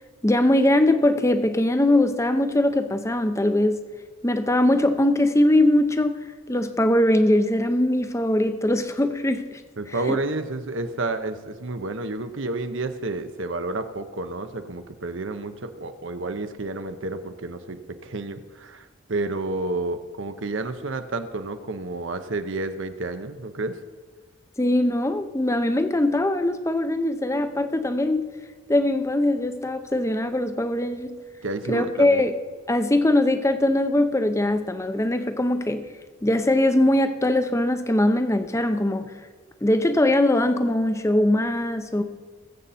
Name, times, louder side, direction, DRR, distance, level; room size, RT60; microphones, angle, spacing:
voice 1, 0.2-3.8 4.2-6.2 6.5-9.6 10.1-10.2 24.6-28.3 28.7-31.1 31.7-32.3 32.7-35.9 36.2-39.1 39.6-42.0, left 1 dB, 15° left, 9 dB, 0.6 m, -21 dB
voice 2, 9.8-23.8 31.4-32.2, right 2 dB, 60° right, 9 dB, 0.8 m, -30 dB
20.0 x 7.9 x 4.2 m, 1.5 s
head